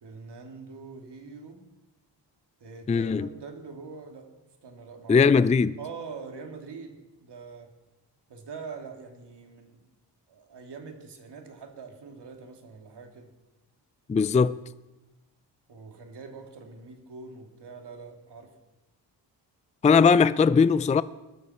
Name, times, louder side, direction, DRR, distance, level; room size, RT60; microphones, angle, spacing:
voice 1, 0.0-1.6 2.6-4.3 4.6-5.2 5.8-7.7 8.3-9.8 10.3-13.3 15.7-18.5, right 4 dB, 65° right, 2.7 m, -43 dB
voice 2, 2.9-3.3 5.1-5.8 14.1-14.6 19.8-21.0, left 5 dB, 15° left, 0.4 m, -19 dB
20.5 x 13.0 x 4.4 m
cardioid pair, 85°, 44 cm